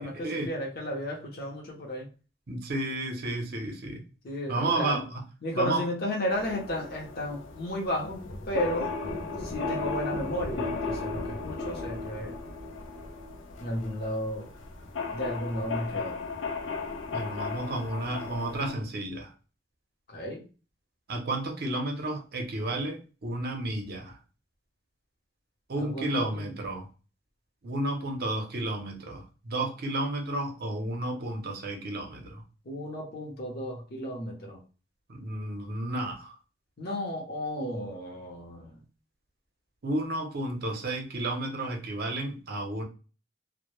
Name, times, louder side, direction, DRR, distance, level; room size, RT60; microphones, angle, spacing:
voice 1, 0.0-2.1 4.2-5.0 5.4-8.9 9.4-12.4 13.6-14.5 15.1-16.2 20.1-20.4 25.8-26.5 32.6-34.6 36.8-38.8, equal, 50° left, -1 dB, 0.7 m, -33 dB
voice 2, 2.5-4.0 4.5-5.2 5.6-5.8 17.1-19.3 21.1-24.2 25.7-26.9 27.6-32.4 35.1-36.4 39.8-42.8, right 2 dB, 55° right, 2 dB, 0.6 m, -32 dB
sound 1, 6.3-18.7, left 3 dB, 90° left, 0.5 m, -36 dB
2.1 x 2.0 x 3.0 m, 0.35 s
head